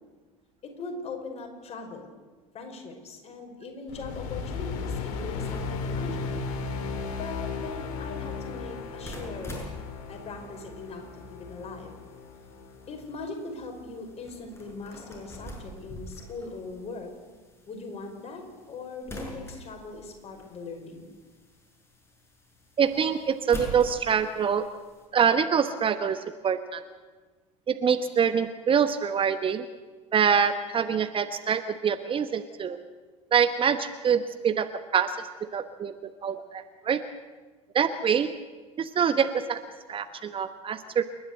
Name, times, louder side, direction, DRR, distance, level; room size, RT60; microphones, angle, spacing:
voice 1, 0.6-2.1 2.5-6.4 7.1-9.6 10.1-12.0 12.9-17.1 17.7-21.1, left 3 dB, 35° left, 3 dB, 5.3 m, -40 dB
sound 1, 3.9-14.4, left 4 dB, 60° left, 2.6 m, -36 dB
sound 2, 5.4-25.1, equal, 15° left, 6.8 m, -46 dB
voice 2, 22.8-24.7 25.1-26.8 27.7-29.6 30.1-32.8 33.3-37.0 37.7-38.3 38.8-39.6 39.9-41.0, right 7 dB, 30° right, 10 dB, 1.2 m, -25 dB
28.5 x 12.0 x 8.0 m, 1.3 s
figure-of-eight pair, 70°, 18 cm